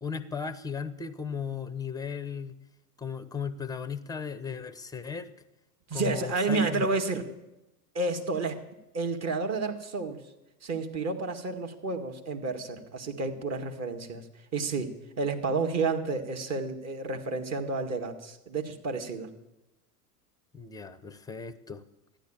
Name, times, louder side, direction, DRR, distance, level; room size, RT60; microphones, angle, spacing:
voice 1, 0.0-2.6 3.0-5.3 5.9-6.8 7.2-7.3 20.5-21.8, left 6 dB, 10° left, 14 dB, 0.8 m, -36 dB
voice 2, 5.9-7.2 7.9-8.6 8.9-10.2 10.6-14.2 14.5-19.3, right 3 dB, 30° right, 5 dB, 2.0 m, -30 dB
13.0 x 10.5 x 8.9 m, 0.95 s
hypercardioid pair, 100°, 49 cm